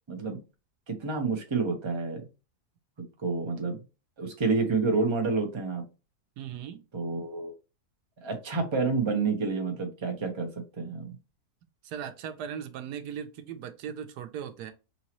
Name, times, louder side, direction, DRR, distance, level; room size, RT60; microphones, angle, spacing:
voice 1, 0.9-2.3 3.2-3.8 4.2-5.8 6.9-7.5 8.2-10.5 10.8-11.2, right 4 dB, 20° right, 0.8 m, -29 dB
voice 2, 6.4-6.8 11.8-14.7, right 8 dB, 85° right, 1.2 m, -38 dB
5.4 x 2.8 x 2.9 m
omnidirectional pair, 1.7 m